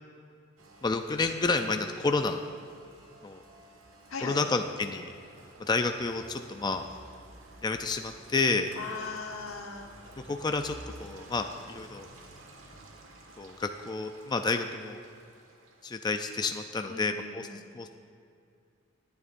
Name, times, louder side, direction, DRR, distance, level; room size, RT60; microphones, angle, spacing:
Rain, 0.6-16.0, right 1 dB, 80° right, 1.5 m, -52 dB
voice 1, 0.8-2.4 3.2-3.4 4.2-5.1 5.6-6.9 7.6-8.7 10.3-12.1 13.4-15.0 15.8-17.9, left 3 dB, 20° left, 6 dB, 0.4 m, -30 dB
voice 2, 4.1-4.4 8.8-9.9 16.8-17.7, left 4 dB, 85° left, 3 dB, 1.2 m, -39 dB
19.0 x 9.6 x 2.6 m, 2.4 s
head